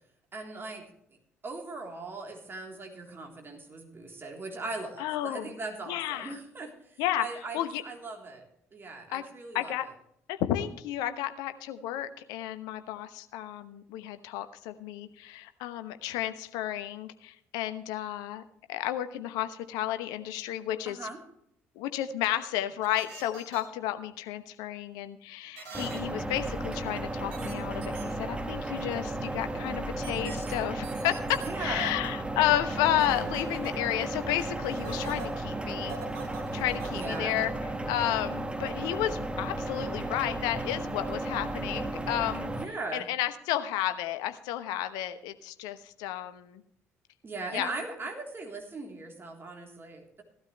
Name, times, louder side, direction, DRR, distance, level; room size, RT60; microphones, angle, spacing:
voice 1, 0.3-0.8 1.4-8.4 8.7-9.9 20.9-21.2 31.4-32.0 36.9-37.4 42.5-43.1 47.2-50.2, right 3 dB, 35° right, 1 dB, 3.6 m, -39 dB
voice 2, 5.0-5.5 5.9-6.4 7.0-7.3 7.5-7.8 9.1-9.2 9.5-9.9 10.3-18.4 18.7-21.1 21.7-36.0 36.5-37.5 37.9-42.5 42.9-46.6 47.5-47.7, left 12 dB, 70° left, 10 dB, 1.1 m, -32 dB
sound 1, 22.8-23.6 25.6-26.0 27.3-27.5 27.8-28.0 30.0-30.5 30.8-31.5 33.0-33.7 34.6-35.3 35.9-37.2, right 5 dB, 70° right, 4.0 m, -43 dB
sound 2, 25.7-42.6, right 2 dB, 15° right, 1.8 m, -34 dB
17.0 x 12.5 x 3.3 m, 0.72 s
figure-of-eight pair, 50°, 7 cm